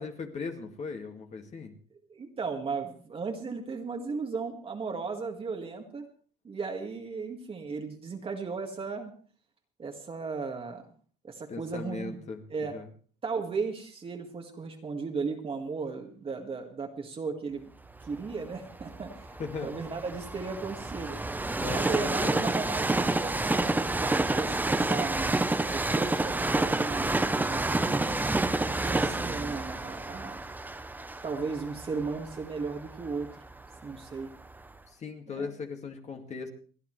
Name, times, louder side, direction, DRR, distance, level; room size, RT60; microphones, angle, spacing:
voice 1, 0.0-1.7 11.5-12.9 19.4-19.7 21.6-22.4 34.9-36.5, left 5 dB, 35° left, 3 dB, 2.1 m, -38 dB
voice 2, 2.1-6.1 6.4-9.1 9.8-10.8 11.2-12.2 12.5-12.8 13.2-17.7 18.0-19.3 19.6-21.2 21.7-28.2 28.7-30.4 31.2-33.5 33.8-34.3 35.3-35.5, right 4 dB, 30° right, 2 dB, 1.9 m, -36 dB
Train, 18.0-34.0 34.6-34.7, right 2 dB, 10° right, 0.8 m, -29 dB
29.0 x 10.0 x 3.2 m, 0.43 s
cardioid pair, 120°, 20 cm